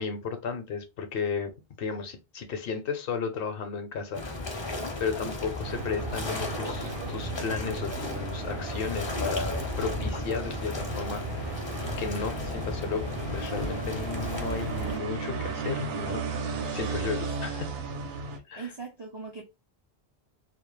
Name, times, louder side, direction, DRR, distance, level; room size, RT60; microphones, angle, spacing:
voice 1, 0.0-1.5 1.8-4.7 5.0-11.5 12.0-16.2 16.7-17.7 18.5-18.7, left 5 dB, 70° left, 0.7 m, -34 dB
sound 1, 4.1-15.0, left 2 dB, 35° left, 0.5 m, -35 dB
sound 2, 5.6-18.4, right 4 dB, 75° right, 0.8 m, -35 dB
voice 2, 17.2-17.8 18.6-19.4, right 4 dB, 45° right, 0.3 m, -41 dB
2.2 x 2.1 x 3.0 m
omnidirectional pair, 1.1 m